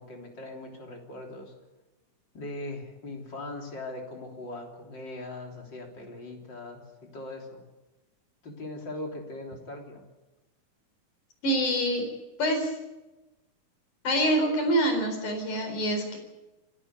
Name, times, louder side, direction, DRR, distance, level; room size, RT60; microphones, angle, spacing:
voice 1, 0.0-1.5 2.3-7.6 8.4-10.1, left 2 dB, 35° left, 1 dB, 3.9 m, -40 dB
voice 2, 11.4-12.0 12.4-12.7 14.0-16.2, right 1 dB, 75° left, 5 dB, 5.9 m, -25 dB
27.5 x 12.5 x 8.3 m, 1.1 s
omnidirectional pair, 3.6 m